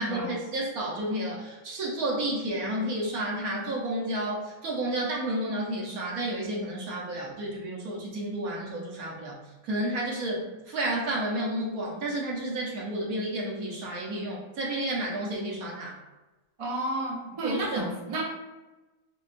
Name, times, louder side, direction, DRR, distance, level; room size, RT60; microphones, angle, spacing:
voice 1, 0.0-9.4 9.6-15.9 17.4-17.7, right 1 dB, 60° right, -3 dB, 1.2 m, -31 dB
voice 2, 16.6-18.2, right 1 dB, 35° right, -4 dB, 0.5 m, -31 dB
5.4 x 2.3 x 2.5 m, 1.1 s
omnidirectional pair, 1.8 m